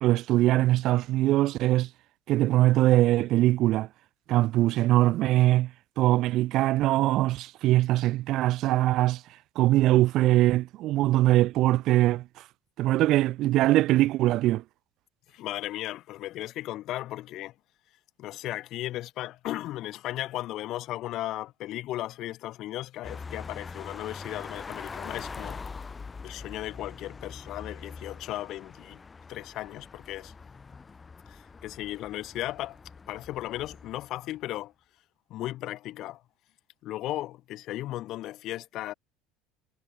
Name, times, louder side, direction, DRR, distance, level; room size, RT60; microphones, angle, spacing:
voice 1, 0.0-1.9 2.3-3.9 4.3-5.7 6.0-9.2 9.6-12.3 12.8-14.6, right 16 dB, 40° right, 2.4 m, -22 dB
voice 2, 15.3-17.5 18.2-25.6 26.2-29.0 29.3-30.3 31.3-32.8 33.1-34.7 35.3-36.2 36.8-38.9, left 15 dB, 40° left, 1.3 m, -36 dB
sound 1, 23.0-34.4, left 4 dB, 15° left, 1.5 m, -43 dB
cardioid pair, 180°, 0 cm